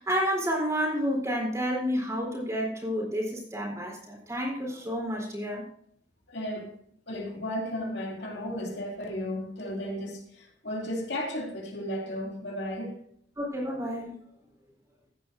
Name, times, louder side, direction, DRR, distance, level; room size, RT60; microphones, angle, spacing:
voice 1, 0.0-5.6 13.4-14.1, equal, 15° right, 4.1 m, -30 dB
voice 2, 6.3-6.7 7.1-13.0, left 1 dB, 65° left, 2.8 m, -34 dB
16.0 x 10.5 x 2.6 m
head